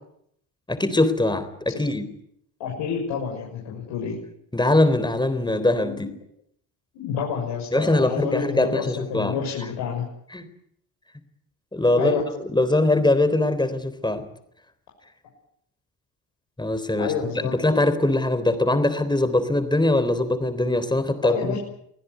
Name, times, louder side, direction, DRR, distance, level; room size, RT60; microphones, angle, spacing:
voice 1, 0.7-2.1 4.5-6.1 7.7-9.4 10.3-10.5 11.7-12.1 12.5-14.2 16.6-17.1 17.4-21.6, left 2 dB, 10° left, 10 dB, 3.7 m, -22 dB
voice 2, 2.6-4.2 5.8-6.1 6.9-8.8 9.1-10.1 11.9-12.2 17.0-17.5 21.2-21.6, left 7 dB, 85° left, -2 dB, 6.6 m, -28 dB
24.5 x 16.0 x 9.5 m, 0.71 s
cardioid pair, 110°, 42 cm